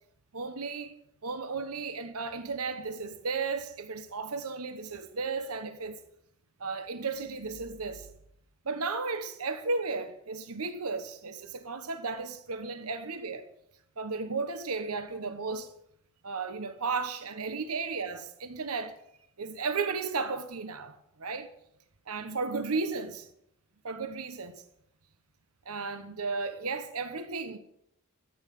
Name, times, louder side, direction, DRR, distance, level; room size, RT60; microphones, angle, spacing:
voice 1, 0.3-0.9 1.2-6.0 6.6-8.1 8.6-13.5 14.0-15.7 16.2-18.9 19.4-21.5 22.1-23.3 23.8-24.6 25.6-27.6, right 4 dB, 90° right, 1.1 m, -34 dB
13.5 x 9.0 x 9.3 m
head